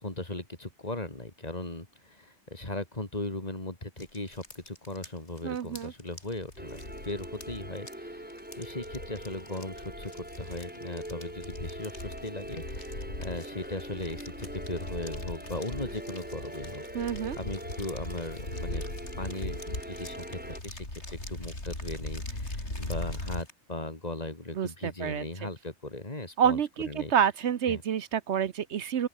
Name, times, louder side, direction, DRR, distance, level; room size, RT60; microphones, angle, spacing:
voice 1, 0.0-18.8 19.2-27.1 27.7-27.8, left 2 dB, 35° left, 3.7 m, -38 dB
sound 1, 4.0-23.5, left 1 dB, 85° left, 6.7 m, -40 dB
voice 2, 5.4-5.9 16.9-17.4 24.6-25.2 26.4-29.1, right 8 dB, 80° right, 1.2 m, -28 dB
sound 2, 6.6-20.6, right 1 dB, 10° right, 2.0 m, -43 dB
open air
omnidirectional pair, 1.1 m